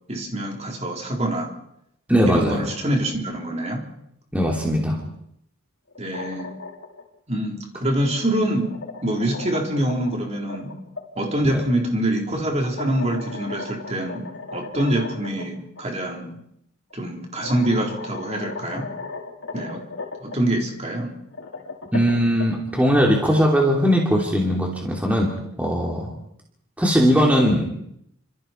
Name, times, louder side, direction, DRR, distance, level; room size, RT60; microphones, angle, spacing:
voice 1, 0.1-1.5 2.3-3.8 6.0-6.5 7.3-8.7 9.0-10.7 11.2-14.3 14.5-16.3 16.9-18.9 19.5-19.8 20.2-21.2, right 1 dB, 30° right, 0 dB, 4.2 m, -25 dB
voice 2, 2.1-2.6 4.3-5.0 11.5-11.6 21.9-25.3 25.6-26.1 26.8-27.6, equal, 5° right, -2 dB, 3.1 m, -19 dB
sound 1, 5.9-7.0 8.2-11.0 12.6-15.4 15.8-15.9 16.9-17.0 17.4-20.4 21.2-22.9, left 4 dB, 60° left, 5.5 m, -36 dB
28.5 x 26.5 x 4.6 m, 0.75 s
head